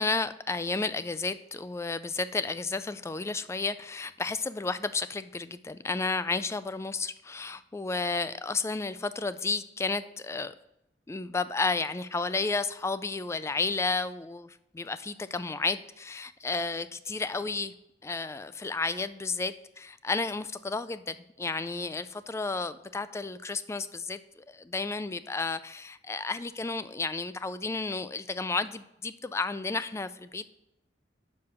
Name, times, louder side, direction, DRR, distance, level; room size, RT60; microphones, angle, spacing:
voice 1, 0.0-10.5 11.1-17.7 18.0-30.5, left 3 dB, 15° left, 14 dB, 0.3 m, -32 dB
6.7 x 5.2 x 6.8 m, 0.83 s
head